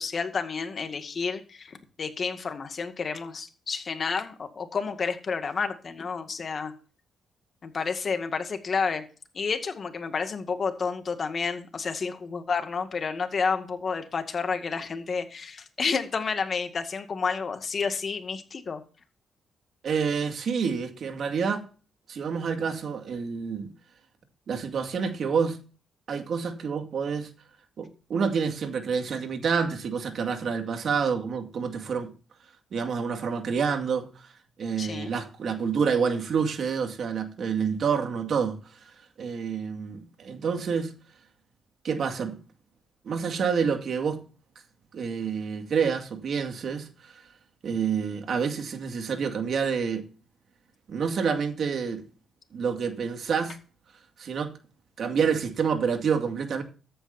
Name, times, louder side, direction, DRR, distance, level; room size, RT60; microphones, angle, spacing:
voice 1, 0.0-6.7 7.6-9.0 9.3-18.8 34.8-35.1, left 5 dB, 40° left, 2.0 m, -30 dB
voice 2, 19.8-21.7 22.1-23.7 24.5-25.6 26.1-27.3 27.8-32.1 32.7-34.3 34.6-38.6 39.2-40.9 41.8-42.4 43.0-44.2 44.9-47.1 47.6-50.0 50.9-52.0 52.5-53.6 54.2-54.5 55.0-56.6, right 6 dB, 55° right, 2.1 m, -28 dB
14.0 x 10.0 x 2.7 m
cardioid pair, 110°, 0 cm